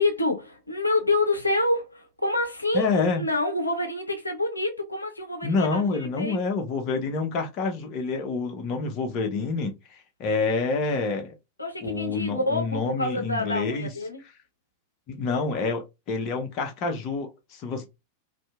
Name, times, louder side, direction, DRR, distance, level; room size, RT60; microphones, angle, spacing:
voice 1, 0.0-6.4 11.6-14.2, left 2 dB, 80° left, 0.5 m, -27 dB
voice 2, 2.7-3.2 5.4-9.7 10.2-11.3 11.8-13.9 15.1-17.9, left 4 dB, 40° left, 0.7 m, -27 dB
2.7 x 2.7 x 2.2 m
figure-of-eight pair, 90°, 0 cm